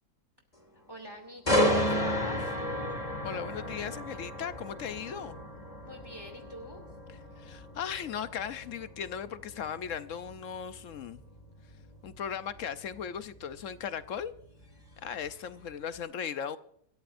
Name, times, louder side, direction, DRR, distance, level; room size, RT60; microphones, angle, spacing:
voice 1, 0.9-2.7 5.8-6.8, left 1 dB, 15° right, 3 dB, 2.4 m, -45 dB
sound 1, 1.5-15.3 15.7-16.0, left 1 dB, 25° left, 2.0 m, -33 dB
voice 2, 3.2-5.3 7.4-11.2 12.0-14.3 15.0-16.6, left 8 dB, 60° left, 12 dB, 1.0 m, -37 dB
26.0 x 13.5 x 2.6 m, 0.68 s
omnidirectional pair, 1.7 m